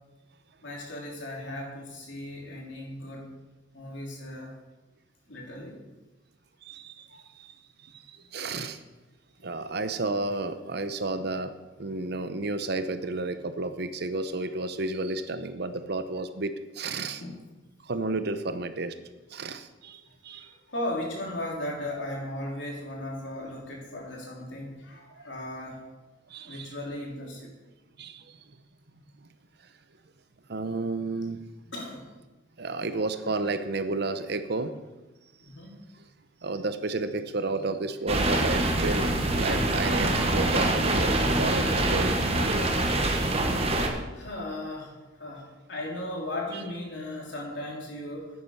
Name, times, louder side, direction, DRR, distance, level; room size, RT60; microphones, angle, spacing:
voice 1, 0.6-3.3 3.7-4.5 5.3-5.8 7.1-7.2 9.4-9.5 17.2-17.4 20.3-25.8 26.4-27.5 31.7-32.0 35.4-35.8 44.1-48.3, left 1 dB, 75° left, -2 dB, 3.4 m, -37 dB
voice 2, 6.6-7.1 7.4-7.5 7.8-8.1 8.3-8.8 9.4-17.2 17.8-19.0 19.3-20.5 25.2-25.3 26.3-26.7 28.0-28.4 30.5-31.4 32.6-34.7 36.4-42.2 43.1-43.4, right 3 dB, 60° right, 10 dB, 0.8 m, -32 dB
sound 1, 38.1-43.9, right 2 dB, 35° right, 1.3 m, -25 dB
10.5 x 8.6 x 5.6 m, 1.1 s
head